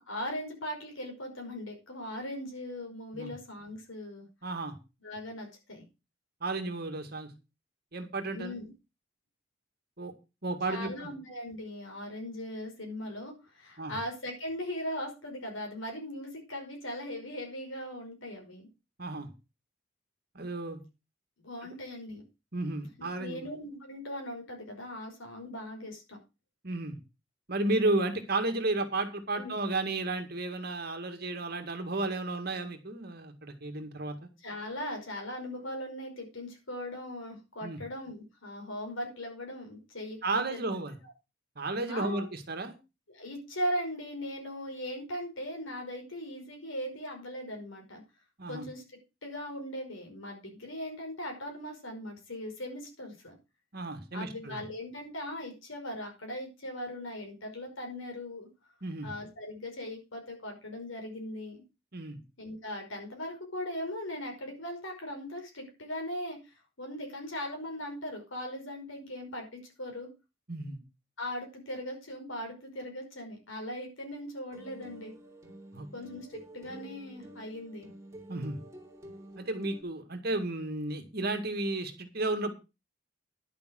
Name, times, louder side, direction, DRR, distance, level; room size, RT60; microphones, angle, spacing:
voice 1, 0.0-4.3 5.0-5.8 8.3-8.7 10.7-18.7 21.4-22.2 23.0-26.2 29.4-29.5 34.4-40.8 41.9-42.3 43.1-48.0 48.5-48.8 49.2-53.3 54.1-58.5 59.0-61.6 62.4-70.1 71.2-75.1 75.9-76.3 76.5-77.9, left 1 dB, 85° left, 2 dB, 5.5 m, -39 dB
voice 2, 4.4-4.8 6.4-7.3 7.9-8.5 10.0-10.1 10.4-11.1 13.8-13.9 19.0-19.3 20.3-20.8 22.5-23.5 26.6-27.0 27.5-34.2 37.6-37.8 40.2-41.0 41.6-42.7 48.4-48.7 53.7-54.6 58.8-59.1 61.9-62.2 70.5-70.8 75.7-75.9 78.3-78.6 79.4-82.5, right 2 dB, 50° right, 7 dB, 2.1 m, -33 dB
sound 1, 74.5-79.8, right 1 dB, 15° right, 2.9 m, -49 dB
11.0 x 7.0 x 6.3 m, 0.29 s
head